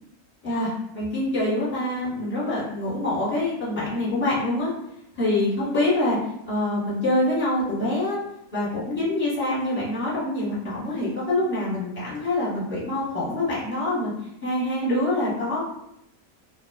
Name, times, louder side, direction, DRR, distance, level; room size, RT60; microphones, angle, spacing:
voice 1, 0.4-4.7 5.1-6.2 6.5-8.2 8.5-14.1 14.4-15.7, left 1 dB, 10° left, -9 dB, 1.0 m, -25 dB
2.4 x 2.3 x 2.3 m, 0.80 s
omnidirectional pair, 1.5 m